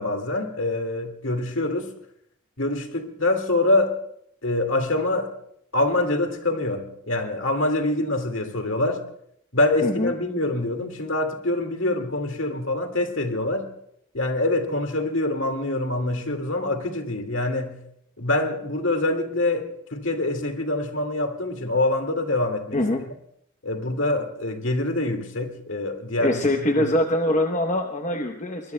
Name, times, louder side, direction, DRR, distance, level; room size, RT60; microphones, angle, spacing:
voice 1, 0.0-1.9 2.6-4.0 4.4-5.3 5.7-9.1 9.5-13.7 14.1-17.8 18.2-22.8 23.6-26.5 26.8-27.0, left 2 dB, 60° left, 2.0 m, -25 dB
voice 2, 9.8-10.1 22.7-23.0 26.2-28.7, left 1 dB, 35° left, 0.9 m, -23 dB
23.0 x 21.0 x 2.2 m
head